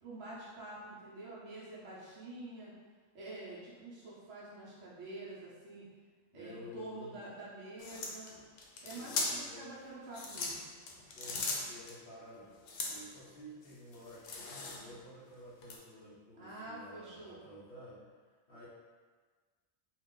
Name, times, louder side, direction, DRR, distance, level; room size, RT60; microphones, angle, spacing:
voice 1, 0.0-2.7 3.1-5.8 6.3-8.3 8.8-10.7 16.4-17.4, right 2 dB, 90° right, -8 dB, 1.2 m, -47 dB
voice 2, 6.3-7.2 9.0-9.6 11.1-12.6 12.9-18.0 18.5-18.7, left 1 dB, 55° left, -10 dB, 1.0 m, -52 dB
sound 1, 7.8-9.6 10.0-11.9 12.6-13.2 13.6-15.0 15.6-15.8, left 3 dB, 90° left, 1.0 m, -39 dB
3.0 x 2.4 x 3.7 m, 1.5 s
omnidirectional pair, 1.2 m